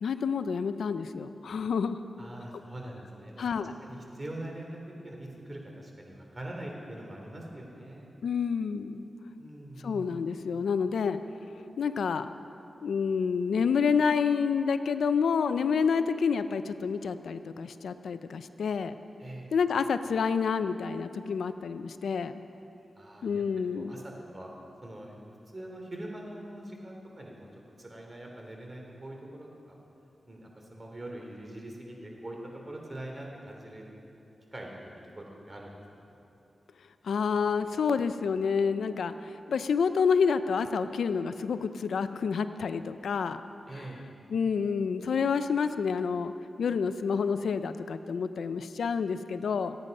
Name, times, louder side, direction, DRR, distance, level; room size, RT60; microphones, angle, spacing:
voice 1, 0.0-2.0 3.4-3.7 8.2-9.1 9.8-11.2 11.8-12.3 12.8-18.9 19.5-22.3 23.2-24.0 37.0-43.4 44.3-46.3 46.6-49.8, left 6 dB, 85° left, 11 dB, 0.5 m, -28 dB
voice 2, 2.2-3.4 3.8-4.8 5.0-8.0 9.4-10.1 19.2-19.5 22.9-23.4 23.7-24.5 24.8-25.2 25.5-27.5 27.8-29.8 30.3-33.9 34.5-35.7 43.7-44.0, right 1 dB, 30° right, 0 dB, 3.3 m, -43 dB
26.0 x 9.2 x 5.4 m, 2.8 s
cardioid pair, 75°, 0 cm